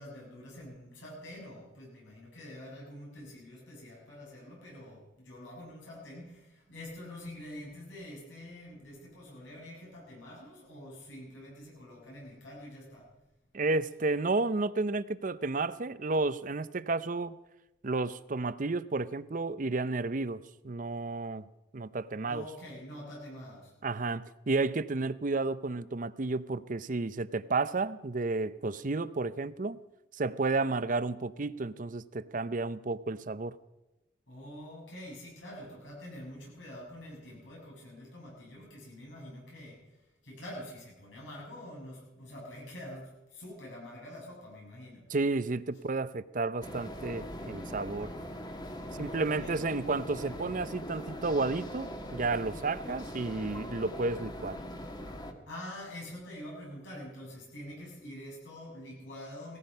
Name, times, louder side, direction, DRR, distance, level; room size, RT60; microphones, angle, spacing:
voice 1, 0.0-13.1 22.2-23.7 34.3-39.8 40.2-45.1 48.9-49.6 55.5-59.6, left 1 dB, 85° left, -4 dB, 7.6 m, -46 dB
voice 2, 13.5-17.4 17.8-21.4 21.7-22.5 23.8-29.8 30.2-33.6 45.1-48.1 48.9-54.6, right 3 dB, 45° right, 15 dB, 0.6 m, -32 dB
sound 1, 46.6-55.3, equal, 20° left, 1.5 m, -41 dB
18.0 x 14.5 x 5.5 m, 1.0 s
head